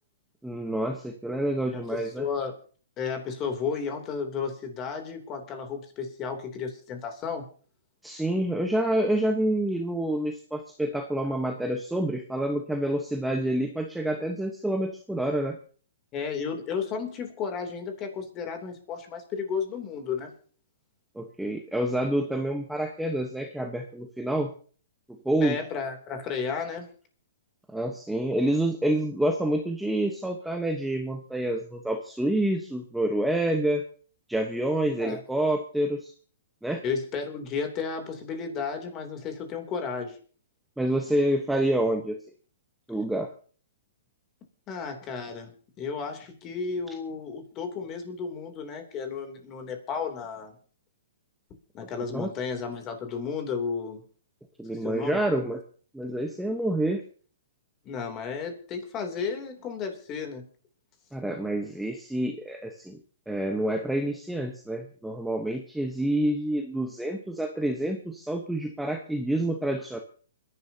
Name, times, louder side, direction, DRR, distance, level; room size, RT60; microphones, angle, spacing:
voice 1, 0.4-2.3 8.0-15.6 21.1-24.5 25.2-25.6 27.7-33.8 34.3-36.1 36.6-36.8 40.8-42.2 42.9-43.3 52.1-52.3 54.6-55.6 55.9-57.0 61.1-63.0 63.3-70.0, right 1 dB, 5° right, 3 dB, 1.1 m, -28 dB
voice 2, 1.7-2.5 3.0-7.4 16.1-20.3 25.4-26.9 34.8-35.2 36.8-40.2 44.7-50.5 51.7-54.0 54.8-55.2 57.8-60.4, left 5 dB, 25° left, 5 dB, 3.1 m, -33 dB
28.0 x 11.0 x 2.9 m, 0.42 s
hypercardioid pair, 140°, 0 cm